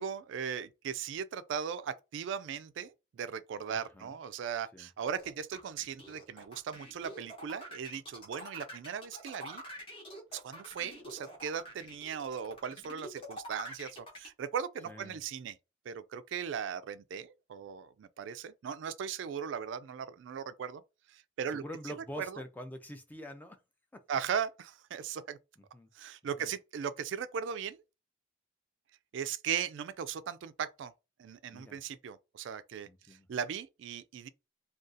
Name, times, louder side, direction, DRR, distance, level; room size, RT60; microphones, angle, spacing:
voice 1, 0.0-9.6 10.3-15.5 15.9-20.8 21.1-21.6 22.2-22.4 24.1-25.4 25.9-27.8 29.1-30.9 31.2-34.3, right 7 dB, 70° right, 0.3 m, -38 dB
voice 2, 3.7-4.1 4.7-4.9 14.8-15.2 21.5-23.6 23.9-24.1 25.6-25.9 26.4-26.5 31.5-31.8 32.9-33.3, left 1 dB, 10° left, 0.4 m, -46 dB
sound 1, 5.2-14.3, equal, 30° left, 0.9 m, -46 dB
2.6 x 2.3 x 3.7 m
head